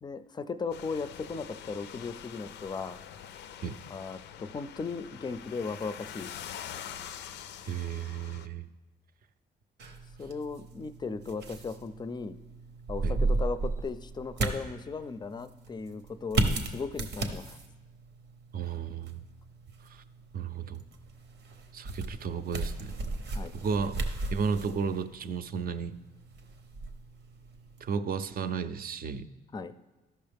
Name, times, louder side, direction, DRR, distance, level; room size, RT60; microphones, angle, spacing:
voice 1, 0.0-3.0 3.9-6.3 10.2-12.4 12.9-17.6 23.3-23.5 29.5-29.8, left 4 dB, 25° left, 13 dB, 0.4 m, -37 dB
sound 1, 0.7-8.5, left 9 dB, 85° left, 0.4 m, -45 dB
voice 2, 7.6-8.6 13.0-13.2 18.5-19.2 19.8-20.0 20.3-20.8 21.7-23.0 23.5-24.0 24.3-26.0 27.8-29.3, right 6 dB, 60° right, 11 dB, 0.5 m, -33 dB
sound 2, 9.8-27.9, right 2 dB, 85° right, 0.9 m, -35 dB
13.0 x 5.5 x 3.5 m, 1.1 s
cardioid pair, 85°, 17 cm